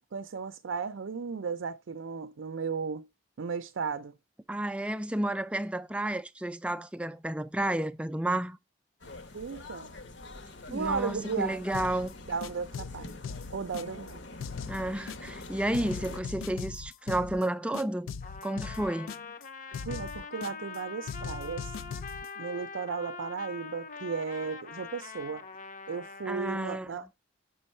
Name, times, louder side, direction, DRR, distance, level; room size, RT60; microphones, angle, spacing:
voice 1, 0.1-3.1 3.4-4.1 9.3-9.9 10.7-11.6 12.3-13.2 13.5-14.2 19.9-21.7 22.4-25.5 25.9-27.1, right 5 dB, 80° right, 0.5 m, -35 dB
voice 2, 4.5-8.6 10.7-12.1 14.7-18.1 18.4-19.1 26.3-26.9, right 1 dB, 5° right, 0.3 m, -31 dB
sound 1, 9.0-16.2, left 2 dB, 65° left, 0.9 m, -45 dB
sound 2, 11.7-12.1 12.4-14.1 14.4-15.4 15.7-17.4 17.7-19.4 19.7-20.8 21.1-22.3, left 6 dB, 85° left, 0.4 m, -40 dB
Trumpet, 18.2-26.6, left 5 dB, 40° left, 0.6 m, -43 dB
6.7 x 5.4 x 4.3 m
head